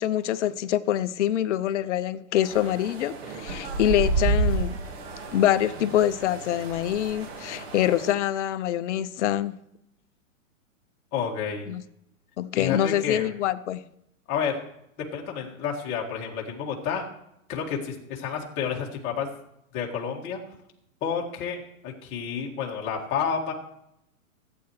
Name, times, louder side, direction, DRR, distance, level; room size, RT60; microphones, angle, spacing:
voice 1, 0.0-4.8 5.3-9.6 11.7-11.8 12.4-13.8, left 11 dB, 55° left, 0.7 m, -25 dB
sound 1, 2.4-8.1, right 3 dB, 45° right, 1.9 m, -30 dB
voice 2, 11.1-11.7 12.6-13.3 14.3-14.6 15.1-17.0 17.5-19.3 19.7-20.4 21.0-23.5, left 7 dB, 30° left, 1.9 m, -30 dB
15.5 x 8.8 x 3.1 m
hypercardioid pair, 145°, 42 cm